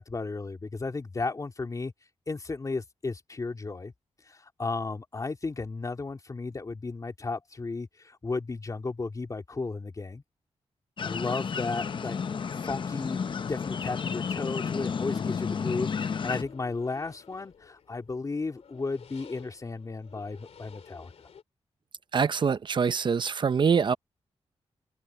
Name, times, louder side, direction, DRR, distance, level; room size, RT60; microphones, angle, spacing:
voice 1, 0.0-1.9 2.3-3.9 4.3-10.2 11.0-12.2 12.6-13.2 13.5-21.1, left 3 dB, 30° left, 3.3 m, -34 dB
sound 1, 11.0-16.4, left 6 dB, 45° left, 0.7 m, -32 dB
sound 2, 16.0-21.4, left 7 dB, 70° left, 2.6 m, -53 dB
voice 2, 22.1-23.9, right 6 dB, 45° right, 0.6 m, -24 dB
open air
wide cardioid pair, 145°, 11 cm